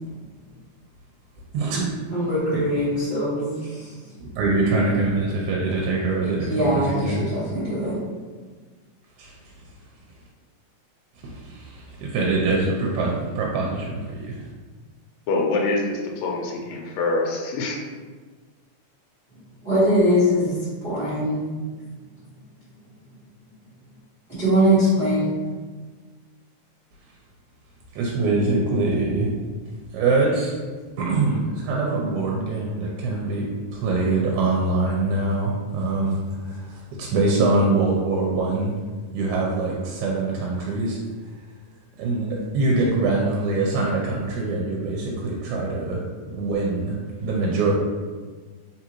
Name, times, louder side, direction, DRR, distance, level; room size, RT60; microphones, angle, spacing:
voice 1, 1.5-2.0 2.5-2.6 4.2-7.3 9.2-9.4 11.2-14.4 27.9-29.4 29.9-30.5 31.0-38.7 39.1-41.0 42.0-47.7, right 3 dB, 85° right, -2 dB, 2.0 m, -24 dB
voice 2, 2.1-3.9 6.2-8.0 19.6-20.6 20.8-21.4 24.3-25.4, equal, 45° right, -11 dB, 0.7 m, -22 dB
voice 3, 15.3-17.8, left 3 dB, 75° left, 0 dB, 1.6 m, -25 dB
4.1 x 3.6 x 2.9 m, 1.4 s
omnidirectional pair, 3.5 m